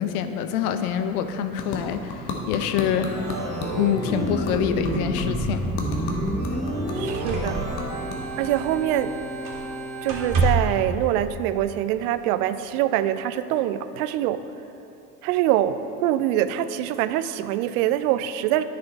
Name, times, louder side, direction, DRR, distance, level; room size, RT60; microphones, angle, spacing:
voice 1, 0.0-3.1 3.7-5.7, left 9 dB, 75° left, 9 dB, 0.7 m, -26 dB
sound 1, 0.6-10.0, left 3 dB, 60° left, 1.3 m, -37 dB
Organ, 3.0-10.4, right 1 dB, 15° right, 1.9 m, -29 dB
sound 2, 6.5-6.7 7.1-9.0 9.4-9.7 10.0-10.8 11.9-12.0, right 3 dB, 45° right, 1.9 m, -28 dB
voice 2, 6.9-7.6 8.4-9.1 10.0-14.4 15.2-18.6, right 12 dB, 70° right, 13 dB, 0.5 m, -24 dB
9.7 x 5.8 x 4.1 m, 2.9 s
hypercardioid pair, 65°, 45 cm